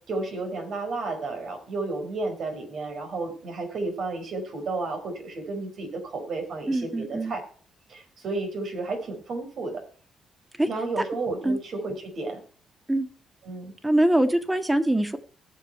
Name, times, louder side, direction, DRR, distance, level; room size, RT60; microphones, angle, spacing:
voice 1, 0.1-7.4 7.9-9.8 10.7-12.4 13.4-13.7, right 3 dB, 65° right, 4 dB, 5.5 m, -32 dB
voice 2, 6.7-7.3 10.6-10.7 11.0-11.1 11.4-11.6 12.9-13.1 13.8-15.2, right 1 dB, 10° right, 8 dB, 1.8 m, -23 dB
18.5 x 7.1 x 4.5 m, 0.43 s
cardioid pair, 90°, 0 cm